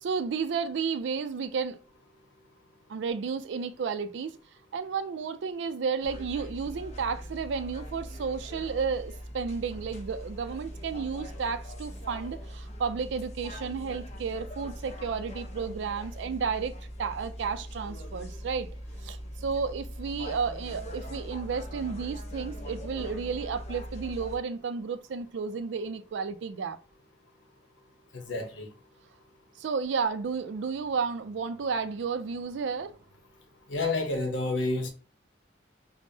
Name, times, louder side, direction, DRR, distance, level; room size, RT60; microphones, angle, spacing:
voice 1, 0.0-1.8 2.9-4.4 4.7-16.7 17.0-18.7 19.0-26.8 29.6-32.9, right 5 dB, 70° right, 0.4 m, -32 dB
sound 1, 6.0-24.4, equal, 35° left, 0.6 m, -41 dB
voice 2, 28.1-28.7 33.7-34.9, left 2 dB, 85° left, 0.8 m, -29 dB
5.2 x 2.1 x 2.6 m
head